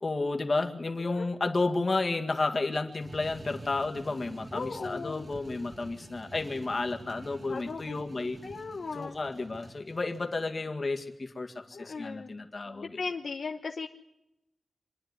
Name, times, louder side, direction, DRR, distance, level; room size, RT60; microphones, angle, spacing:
voice 1, 0.0-8.4 8.9-13.0, left 3 dB, 45° left, 4 dB, 2.0 m, -32 dB
sound 1, 2.9-10.3, right 2 dB, 45° right, 1.6 m, -48 dB
voice 2, 4.5-5.3 7.5-8.1 8.4-9.1 11.7-12.4 12.6-13.9, left 4 dB, 80° left, 3 dB, 1.0 m, -37 dB
26.0 x 10.0 x 9.7 m, 0.87 s
wide cardioid pair, 115°, 0 cm